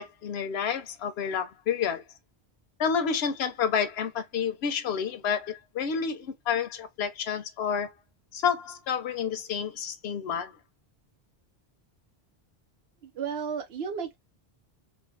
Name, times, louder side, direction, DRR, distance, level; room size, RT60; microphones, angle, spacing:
voice 1, 0.0-2.0 2.8-7.9 8.3-10.6, left 7 dB, 80° left, 0.9 m, -29 dB
voice 2, 13.0-14.2, right 6 dB, 85° right, 1.0 m, -33 dB
2.5 x 2.2 x 3.1 m
omnidirectional pair, 1.0 m